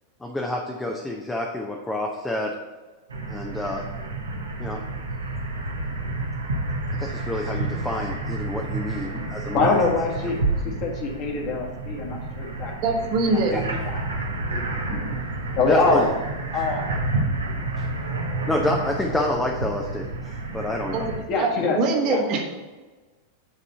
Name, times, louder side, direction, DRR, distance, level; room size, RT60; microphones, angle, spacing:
voice 1, 0.2-2.5 3.3-3.8 4.6-4.8 7.0-9.7 13.5-13.6 15.7-16.1 18.5-21.0, left 1 dB, 10° left, 0 dB, 0.8 m, -28 dB
sound 1, 3.1-21.2, right 2 dB, 75° right, 1.1 m, -30 dB
voice 2, 9.1-10.4 10.6-12.9 13.3-13.4 13.9-14.0 14.5-15.3 15.5-16.1 16.5-17.0 21.3-21.8 22.1-22.2, left 3 dB, 40° left, -1 dB, 1.8 m, -25 dB
voice 3, 12.8-13.7 20.9-21.5 21.7-22.4, right 3 dB, 40° right, 1 dB, 1.4 m, -23 dB
8.3 x 4.1 x 5.6 m, 1.3 s
figure-of-eight pair, 90°, 0 cm